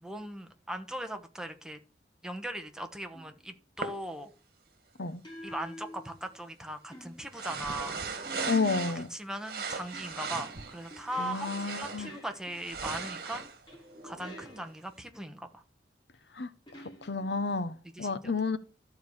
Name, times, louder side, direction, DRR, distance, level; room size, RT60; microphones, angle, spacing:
voice 1, 0.0-1.8 2.2-4.3 5.4-8.0 9.1-13.5 14.0-15.6 18.0-18.1, right 1 dB, 5° right, 1.1 m, -39 dB
sound 1, 3.1-3.5 5.2-6.5 6.9-9.1 9.9-12.9 13.7-15.0 16.7-17.6, equal, 25° left, 2.8 m, -49 dB
sound 2, 3.8-3.9 7.3-9.1 9.4-12.1 12.5-14.7, right 4 dB, 55° right, 1.8 m, -38 dB
voice 2, 8.4-9.1 11.2-12.1 16.3-16.5 17.0-18.6, left 4 dB, 70° left, 0.9 m, -31 dB
13.0 x 4.7 x 7.1 m
head